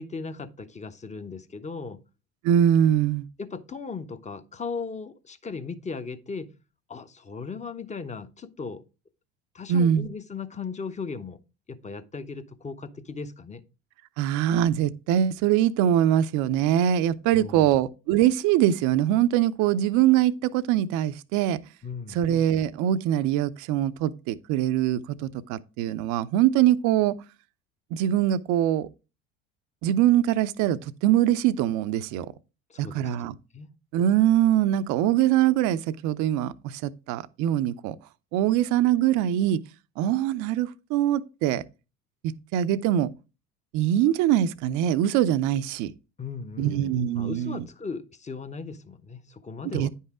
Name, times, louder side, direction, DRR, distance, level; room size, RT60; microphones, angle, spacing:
voice 1, 0.0-2.0 3.4-6.5 6.9-8.8 9.5-11.4 11.7-13.6 17.3-17.7 21.8-22.2 32.7-33.1 33.5-33.7 46.2-46.9 47.2-49.9, left 5 dB, 20° left, 0.8 m, -37 dB
voice 2, 2.4-3.3 9.7-10.1 14.2-21.6 22.1-27.1 27.9-28.9 29.8-32.3 32.8-33.3 33.9-38.0 38.3-39.6 40.0-41.6 42.5-43.1 43.7-45.9 46.6-47.7 49.7-49.9, right 11 dB, 60° right, 0.6 m, -23 dB
9.7 x 5.6 x 3.6 m
hypercardioid pair, 80°, 34 cm